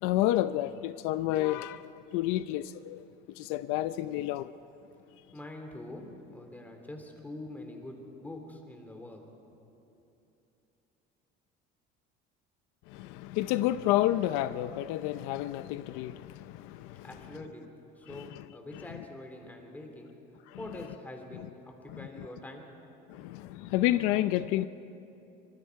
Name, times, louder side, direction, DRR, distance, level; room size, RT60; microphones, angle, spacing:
voice 1, 0.0-3.1 3.3-4.5 12.9-17.1 18.1-18.5 20.5-20.6 21.9-22.3 23.1-24.7, left 14 dB, 85° left, 0.6 m, -30 dB
voice 2, 5.3-9.2 17.0-17.7 18.0-20.1 20.6-22.7, left 1 dB, 10° left, 2.8 m, -44 dB
24.5 x 24.5 x 4.7 m
cardioid pair, 140°, 21 cm